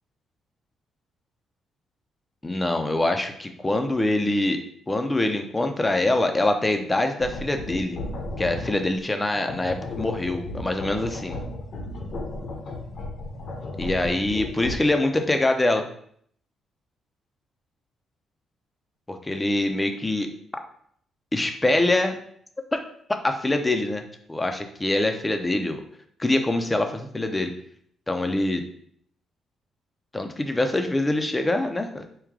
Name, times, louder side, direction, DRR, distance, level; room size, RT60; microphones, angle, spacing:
voice 1, 2.4-4.6 4.9-8.0 8.4-11.4 13.8-15.8 19.1-20.3 21.3-22.2 22.7-22.8 23.2-24.0 24.3-25.8 26.2-27.5 28.1-28.6 30.1-32.0, left 2 dB, 15° left, 5 dB, 0.6 m, -24 dB
sound 1, 7.2-8.9 9.3-14.7, left 2 dB, 55° left, 0.9 m, -34 dB
4.6 x 2.3 x 3.6 m, 0.64 s
cardioid pair, 90°, 0 cm